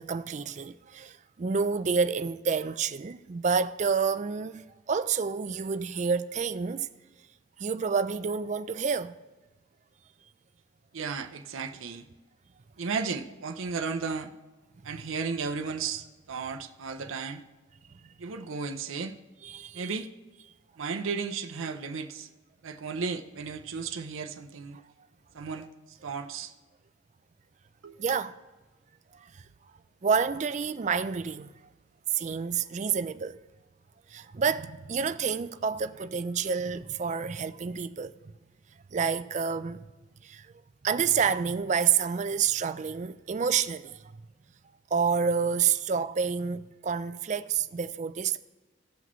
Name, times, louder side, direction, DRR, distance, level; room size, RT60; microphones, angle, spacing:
voice 1, 0.0-6.9 7.6-9.1 19.4-19.9 28.0-28.3 29.1-29.4 30.0-31.5 32.1-33.4 34.1-38.1 38.9-39.9 40.2-40.4 40.8-44.0 44.9-48.4, right 6 dB, 35° right, 0.3 m, -28 dB
voice 2, 10.9-12.1 12.8-14.3 14.8-17.4 18.2-19.2 19.7-20.1 20.8-22.3 22.6-24.8 25.3-26.5 27.8-28.2, right 5 dB, 75° right, 0.6 m, -34 dB
17.0 x 6.0 x 3.1 m
head